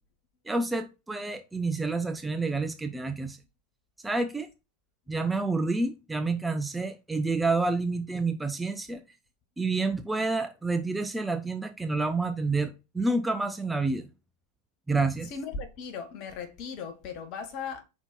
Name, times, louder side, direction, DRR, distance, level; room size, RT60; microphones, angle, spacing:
voice 1, 0.5-3.4 4.0-4.5 5.1-9.0 9.6-14.1 14.9-15.3, right 3 dB, 10° right, 0.5 m, -28 dB
voice 2, 15.2-17.8, left 5 dB, 40° left, 1.4 m, -37 dB
5.2 x 4.5 x 4.1 m
figure-of-eight pair, 90°, 0 cm